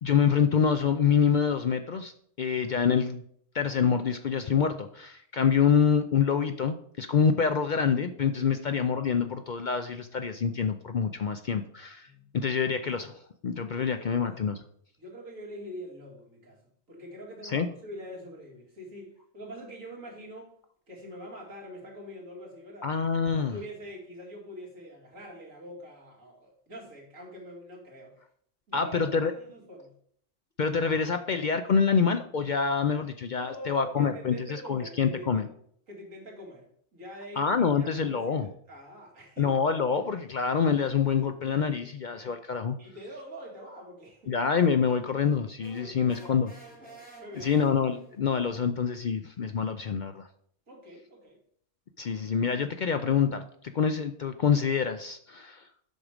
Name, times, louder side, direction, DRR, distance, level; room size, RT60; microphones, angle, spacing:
voice 1, 0.0-2.1 2.4-3.2 3.5-12.1 12.3-14.6 17.4-17.7 22.8-23.6 28.7-29.3 30.6-35.5 37.4-38.5 39.4-42.7 44.3-46.5 47.4-50.3 52.0-53.4 53.7-55.6, left 6 dB, 60° left, 8 dB, 0.5 m, -26 dB
voice 2, 13.7-14.2 15.0-16.6 16.9-20.5 20.9-22.9 23.3-28.2 28.7-29.9 33.4-35.4 35.9-39.5 42.2-42.3 42.8-44.4 45.8-47.7 50.7-51.4, equal, 80° right, -2 dB, 2.8 m, -44 dB
sound 1, 45.6-48.2, right 3 dB, 5° left, 3.1 m, -51 dB
8.0 x 6.1 x 5.0 m, 0.65 s
omnidirectional pair, 1.4 m